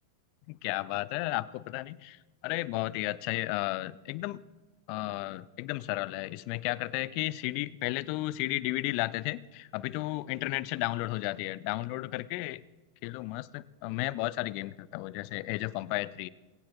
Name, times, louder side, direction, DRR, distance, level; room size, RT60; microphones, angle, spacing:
voice 1, 0.5-4.4 4.9-12.6 13.0-16.3, left 19 dB, 45° left, 20 dB, 0.4 m, -33 dB
21.0 x 17.0 x 2.3 m, 1.2 s
figure-of-eight pair, 90°, 0 cm